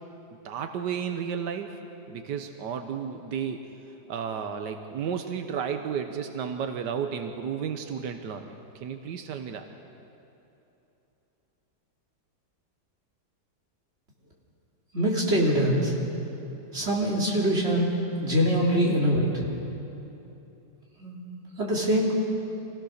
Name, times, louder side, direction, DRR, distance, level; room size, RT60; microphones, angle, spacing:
voice 1, 0.4-1.8 2.1-3.6 4.1-8.5 8.8-9.7, right 7 dB, 90° right, 6 dB, 1.5 m, -32 dB
voice 2, 14.9-15.9 16.7-19.4 21.0-21.2 21.6-22.1, equal, 40° right, -3 dB, 3.5 m, -24 dB
25.0 x 16.5 x 6.5 m, 2.9 s
omnidirectional pair, 1.8 m